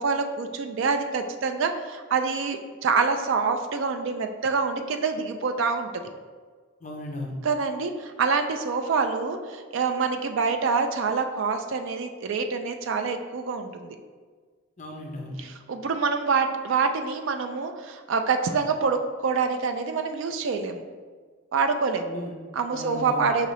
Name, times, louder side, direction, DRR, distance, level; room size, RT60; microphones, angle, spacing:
voice 1, 0.0-6.0 7.4-14.0 15.4-20.8 21.5-22.1 22.5-23.5, right 5 dB, 60° right, 6 dB, 0.3 m, -26 dB
voice 2, 6.8-7.3 14.8-15.4 22.0-22.3 22.7-23.3, left 1 dB, 35° left, 0 dB, 0.4 m, -36 dB
4.9 x 2.7 x 3.0 m, 1.5 s
head